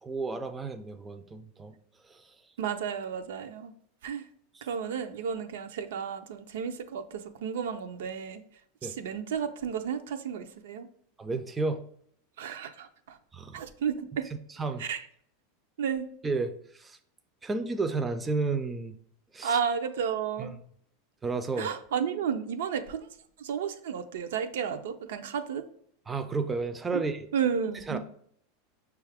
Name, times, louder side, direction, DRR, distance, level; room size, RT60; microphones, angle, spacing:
voice 1, 0.0-1.7 2.1-2.3 4.5-4.7 8.8-8.9 11.2-11.9 13.3-13.6 14.6-14.8 16.2-17.0 17.4-19.0 19.3-19.6 20.4-20.6 21.2-21.7 26.1-27.3 27.9-28.0, right 3 dB, 15° right, 7 dB, 0.3 m, -32 dB
voice 2, 2.6-3.7 4.0-4.3 4.6-8.4 8.8-10.9 12.4-13.2 13.5-14.3 14.8-15.1 15.8-16.1 19.4-20.5 21.6-23.1 23.4-25.6 26.9-27.0 27.3-28.0, right 7 dB, 85° right, 8 dB, 0.4 m, -32 dB
5.6 x 2.3 x 3.4 m, 0.64 s
supercardioid pair, 140°, 0 cm